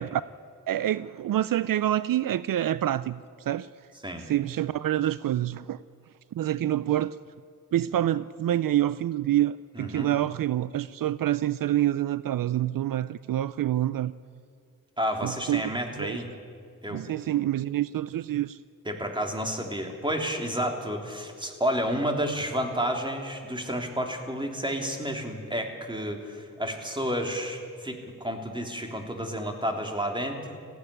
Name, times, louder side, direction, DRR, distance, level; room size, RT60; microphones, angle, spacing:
voice 1, 0.7-3.7 4.3-5.8 6.3-7.2 7.7-14.1 15.2-15.7 16.0-16.2 16.9-18.6, right 12 dB, 75° right, 17 dB, 0.5 m, -27 dB
voice 2, 9.7-10.1 15.0-16.3 16.8-17.0 18.8-30.6, equal, 15° right, 3 dB, 3.3 m, -30 dB
19.0 x 15.5 x 10.0 m, 2.2 s
cardioid pair, 65°, 33 cm